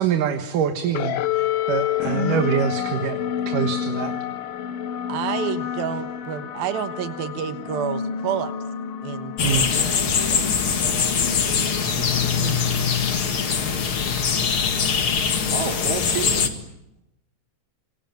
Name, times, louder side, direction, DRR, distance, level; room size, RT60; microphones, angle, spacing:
voice 1, 0.0-4.2 9.4-9.7, right 8 dB, 70° right, 7 dB, 2.9 m, -25 dB
sound 1, 0.9-15.7, left 9 dB, 65° left, 1.5 m, -29 dB
voice 2, 5.1-8.5 9.0-11.2 11.9-12.1 12.4-12.6, right 9 dB, 90° right, 9 dB, 3.2 m, -30 dB
sound 2, 9.4-16.5, left 6 dB, 40° left, 2.4 m, -23 dB
voice 3, 12.8-13.4 14.1-16.6, right 5 dB, 45° right, 4 dB, 4.0 m, -34 dB
27.0 x 24.0 x 9.2 m, 0.85 s
omnidirectional pair, 4.1 m